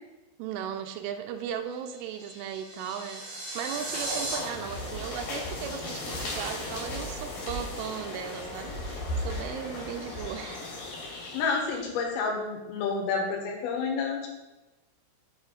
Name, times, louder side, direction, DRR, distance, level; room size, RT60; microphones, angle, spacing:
voice 1, 0.4-10.7, right 8 dB, 85° right, 5 dB, 3.0 m, -37 dB
sound 1, 1.7-4.4, right 2 dB, 40° right, 3.9 m, -36 dB
sound 2, 3.5-11.9, left 1 dB, 50° left, 3.2 m, -37 dB
voice 2, 11.3-14.3, left 4 dB, 85° left, 1 dB, 3.9 m, -29 dB
8.0 x 6.6 x 3.8 m, 1.0 s
omnidirectional pair, 5.8 m